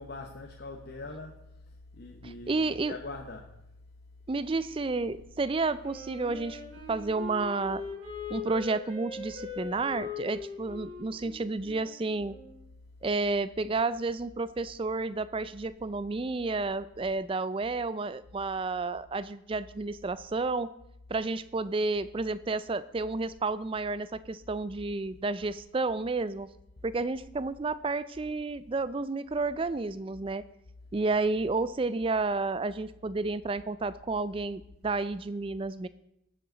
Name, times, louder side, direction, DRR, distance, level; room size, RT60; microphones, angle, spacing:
voice 1, 0.0-1.5 1.9-3.5, left 3 dB, 50° left, 1 dB, 0.9 m, -42 dB
voice 2, 2.2-3.0 4.3-6.6 6.9-7.8 8.3-12.3 13.0-20.7 21.1-26.5 26.8-30.4 30.9-35.9, right 3 dB, 25° right, 15 dB, 0.3 m, -31 dB
Wind instrument woodwind instrument, 5.8-12.6, left 4 dB, 70° right, 3.4 m, -41 dB
19.5 x 7.7 x 3.9 m, 0.82 s
head